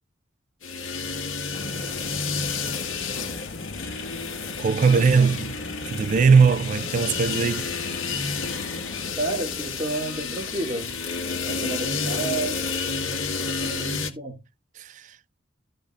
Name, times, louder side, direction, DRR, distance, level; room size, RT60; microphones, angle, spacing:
sound 1, 0.6-14.1, left 4 dB, 85° left, 1.7 m, -30 dB
sound 2, 1.5-9.2, left 3 dB, 60° left, 0.7 m, -39 dB
voice 1, 4.6-5.6 5.9-7.7 14.8-15.2, right 5 dB, 40° right, 0.3 m, -19 dB
voice 2, 9.2-11.0 11.4-14.4, right 2 dB, 25° right, 2.0 m, -32 dB
14.5 x 5.2 x 2.5 m
head